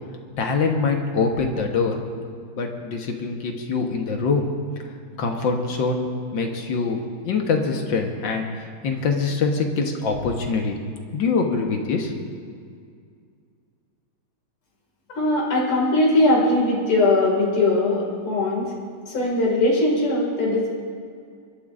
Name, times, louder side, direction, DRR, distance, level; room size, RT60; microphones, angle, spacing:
voice 1, 0.4-2.0 2.6-4.5 5.1-6.1 6.3-10.8 11.1-12.4, left 4 dB, 60° left, 3 dB, 1.8 m, -24 dB
voice 2, 15.1-18.7 19.1-20.7, left 2 dB, 80° left, -4 dB, 3.2 m, -20 dB
28.0 x 12.5 x 2.6 m, 2.2 s
omnidirectional pair, 2.4 m